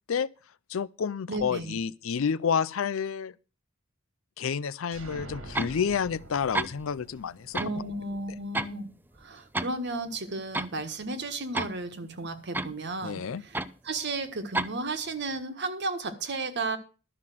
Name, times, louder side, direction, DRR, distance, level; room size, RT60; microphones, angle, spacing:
voice 1, 0.7-3.3 4.4-7.6 13.0-13.4, left 6 dB, 70° left, 0.5 m, -29 dB
voice 2, 1.3-1.8 7.6-8.9 9.2-13.6 13.8-16.8, right 2 dB, 55° right, 1.5 m, -34 dB
sound 1, 4.9-8.6, right 1 dB, 80° right, 2.3 m, -46 dB
sound 2, 5.5-5.8 6.3-6.4 6.5-6.7 7.5-7.8 8.1-8.8 9.1-9.7 10.1-10.2 10.5-10.7 11.5-11.8 12.5-12.8 13.5-13.7 14.5-14.7, right 2 dB, 10° right, 0.5 m, -30 dB
12.5 x 5.8 x 7.6 m
head